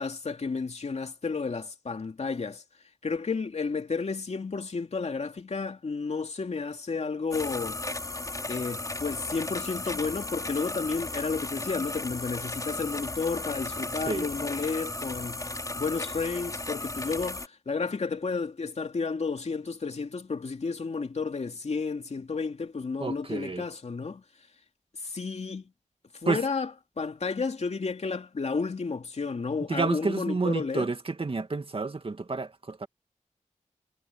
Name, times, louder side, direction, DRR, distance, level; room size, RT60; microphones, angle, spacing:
voice 1, 0.0-2.6 3.0-7.8 8.5-15.5 15.7-24.2 25.0-25.6 26.2-26.7 27.0-30.9, left 4 dB, 55° left, 2.8 m, -32 dB
sound 1, 7.3-17.5, left 2 dB, 25° left, 5.1 m, -35 dB
voice 2, 23.0-23.6 26.3-26.4 29.7-32.9, right 3 dB, 45° right, 2.4 m, -30 dB
cardioid pair, 60°, 13 cm